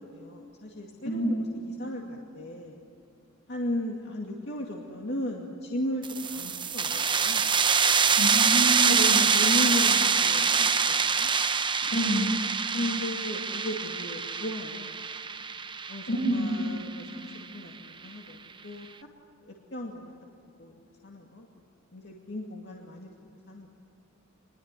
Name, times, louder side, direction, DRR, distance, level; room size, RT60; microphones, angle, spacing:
voice 1, 0.0-2.8 3.5-7.4 8.9-11.3 12.7-15.0 15.9-18.9 19.4-20.1 20.6-20.7 21.0-21.5 21.9-23.7, left 1 dB, 60° left, -1 dB, 2.4 m, -36 dB
sound 1, 6.0-17.4, right 6 dB, 25° right, 0.9 m, -25 dB
voice 2, 8.2-9.2 11.9-12.3 16.1-16.5, equal, 80° left, 1 dB, 7.9 m, -27 dB
26.0 x 21.5 x 9.9 m, 2.4 s
head